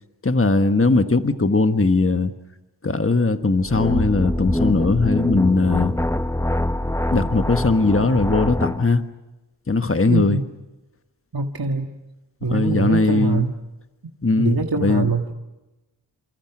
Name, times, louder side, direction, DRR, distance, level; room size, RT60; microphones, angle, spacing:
voice 1, 0.2-2.3 2.8-5.9 7.1-9.0 9.7-10.4 12.5-13.5 14.2-15.1, left 3 dB, 30° left, 9 dB, 1.4 m, -19 dB
sound 1, 3.6-8.9, left 1 dB, 5° left, 0.8 m, -24 dB
voice 2, 10.1-10.5 11.3-11.9 12.4-13.5 14.4-15.3, right 4 dB, 60° right, 3 dB, 1.9 m, -23 dB
29.0 x 27.5 x 6.2 m, 1.0 s
wide cardioid pair, 55°, 41 cm